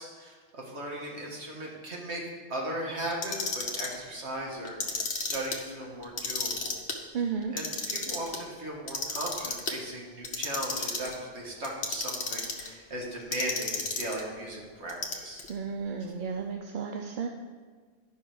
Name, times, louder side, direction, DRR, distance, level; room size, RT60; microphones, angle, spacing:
voice 1, 0.0-6.8 7.5-15.5, right 1 dB, 80° right, -2 dB, 1.9 m, -37 dB
Clock, 3.1-4.0 4.6-5.6 6.0-7.0 7.4-8.4 8.9-9.7 10.2-11.2 11.6-12.7 13.3-14.2 14.9-15.5, left 4 dB, 75° left, 1.2 m, -32 dB
voice 2, 7.1-7.5 15.5-17.3, right 6 dB, 55° right, 3 dB, 0.6 m, -33 dB
10.5 x 5.5 x 4.9 m, 1.5 s
omnidirectional pair, 1.1 m